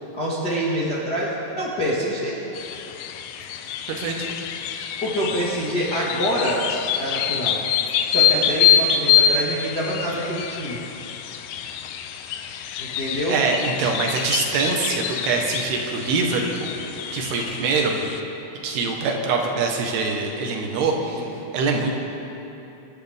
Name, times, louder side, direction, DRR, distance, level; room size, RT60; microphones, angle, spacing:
voice 1, 0.1-1.3 1.6-2.4 5.0-6.6 7.0-7.6 8.0-10.8 12.8-13.4 21.0-21.3, equal, 45° left, -8 dB, 1.4 m, -26 dB
sound 1, 2.5-18.2, left 8 dB, 85° left, 2.0 m, -25 dB
voice 2, 3.9-4.3 13.3-16.7 17.1-18.0 18.6-21.2 21.5-22.0, right 4 dB, 70° right, 1 dB, 3.2 m, -24 dB
25.5 x 12.0 x 3.5 m, 3.0 s
omnidirectional pair, 5.0 m